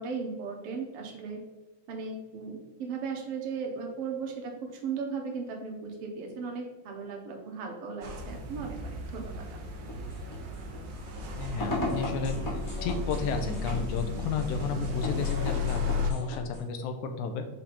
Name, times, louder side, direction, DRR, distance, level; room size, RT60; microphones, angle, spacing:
voice 1, 0.0-1.4 1.9-9.4, right 5 dB, 60° right, 1 dB, 1.8 m, -37 dB
sound 1, 8.0-16.1, left 4 dB, 80° right, 1.0 m, -34 dB
sound 2, 9.9-16.6, left 1 dB, 35° left, 1.5 m, -37 dB
voice 2, 11.3-17.5, left 5 dB, 85° left, 6 dB, 2.1 m, -33 dB
6.5 x 3.9 x 4.2 m, 1.1 s
omnidirectional pair, 3.4 m